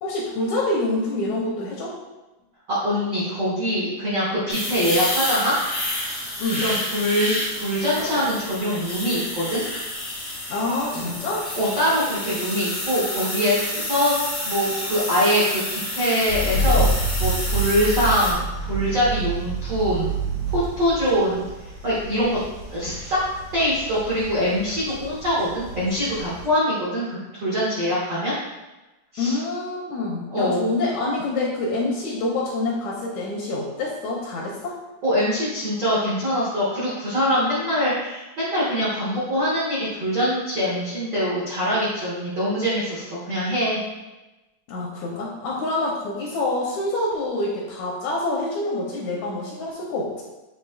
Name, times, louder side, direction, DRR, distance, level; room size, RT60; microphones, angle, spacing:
voice 1, 0.0-1.9 6.4-6.7 10.5-11.5 29.2-34.8 44.7-50.2, left 2 dB, 80° left, -3 dB, 1.8 m, -26 dB
voice 2, 2.7-5.6 6.6-9.6 11.5-20.1 20.5-21.4 21.8-22.4 22.7-23.2 23.5-28.3 29.1-29.4 30.3-30.6 35.0-43.8, equal, 85° right, -9 dB, 0.9 m, -23 dB
sound 1, 4.5-18.3, left 1 dB, 55° left, 0.7 m, -29 dB
sound 2, 16.3-26.5, right 2 dB, 60° right, 0.8 m, -28 dB
7.9 x 2.8 x 2.3 m, 1.1 s
omnidirectional pair, 3.8 m